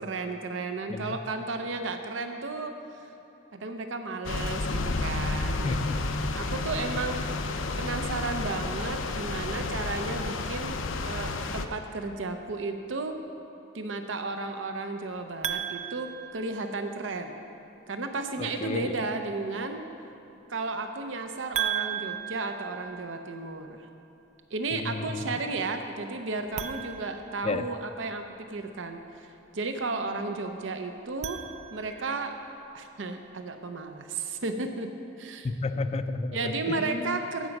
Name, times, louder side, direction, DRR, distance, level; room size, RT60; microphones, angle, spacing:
voice 1, 0.0-3.1 3.5-5.8 6.2-7.4 7.8-13.2 13.7-17.4 17.9-19.8 20.5-23.9 24.5-28.2 28.5-29.3 29.5-31.4 31.7-32.3 32.7-35.5 36.3-37.5, right 3 dB, 75° right, 6 dB, 0.7 m, -33 dB
sound 1, 4.2-11.7, left 3 dB, 90° left, 0.6 m, -31 dB
voice 2, 5.6-6.3 18.6-18.9 24.7-25.3 27.4-27.6 35.4-37.2, left 3 dB, 35° left, 11 dB, 0.4 m, -32 dB
sound 2, 15.4-17.1 21.5-23.6 26.5-28.1 31.0-32.2, right 10 dB, 35° right, 0.4 m, -36 dB
15.5 x 5.2 x 5.9 m, 2.9 s
head